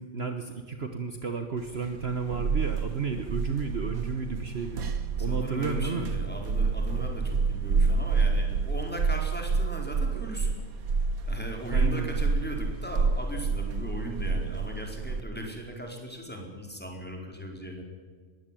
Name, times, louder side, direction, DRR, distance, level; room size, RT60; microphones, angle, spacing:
voice 1, 0.0-4.8 5.2-6.1 11.7-12.1, right 5 dB, 50° right, 6 dB, 1.5 m, -32 dB
sound 1, 1.7-15.2, right 4 dB, 80° right, 1.7 m, -28 dB
voice 2, 5.2-10.6 11.2-17.9, equal, 5° left, 1 dB, 4.5 m, -38 dB
21.5 x 16.5 x 9.2 m, 1.5 s
omnidirectional pair, 1.5 m